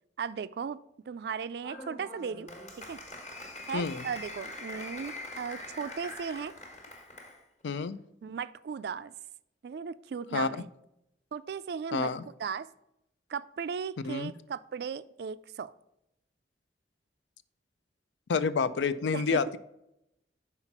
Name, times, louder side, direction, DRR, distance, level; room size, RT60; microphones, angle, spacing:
voice 1, 0.2-0.8 1.1-2.5 2.8-3.0 3.7-6.5 8.2-9.1 9.6-10.7 11.3-12.1 12.4-12.7 13.3-15.7 19.1-19.4, right 6 dB, 65° right, 15 dB, 0.3 m, -36 dB
Applause, 1.6-7.4, left 2 dB, 40° left, 1.3 m, -43 dB
voice 2, 7.6-8.0 10.3-10.5 11.9-12.3 14.0-14.3 18.3-19.6, left 5 dB, 85° left, 15 dB, 0.4 m, -29 dB
5.7 x 4.3 x 5.9 m, 0.83 s
head